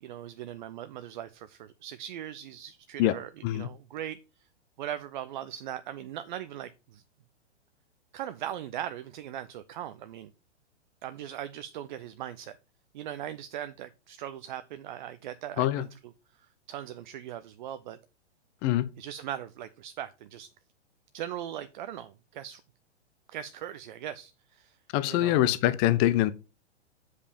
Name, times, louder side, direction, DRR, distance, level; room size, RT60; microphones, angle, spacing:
voice 1, 0.0-4.2 4.8-7.0 8.1-10.3 11.0-12.6 12.9-16.1 16.7-18.0 19.0-20.5 21.1-22.6 23.3-24.8 25.0-25.5, right 11 dB, 40° right, 0.6 m, -39 dB
voice 2, 24.9-26.3, left 14 dB, 25° left, 0.7 m, -24 dB
8.0 x 5.1 x 5.2 m
figure-of-eight pair, 115°, 35 cm